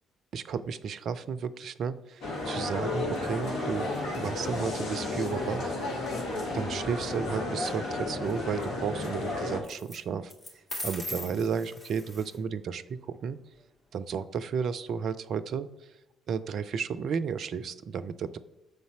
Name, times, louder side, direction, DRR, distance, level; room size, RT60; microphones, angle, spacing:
voice 1, 0.3-3.9 4.1-5.7 6.0-6.1 6.5-10.3 10.8-13.4 13.9-15.7 16.3-18.4, right 6 dB, 55° right, 13 dB, 0.4 m, -33 dB
sound 1, 2.2-9.6, left 2 dB, 65° left, 1.5 m, -32 dB
sound 2, 6.8-7.3 9.6-10.0 10.3-12.4, left 1 dB, 30° left, 2.2 m, -39 dB
6.7 x 4.1 x 5.8 m, 0.96 s
figure-of-eight pair, 45°, 0 cm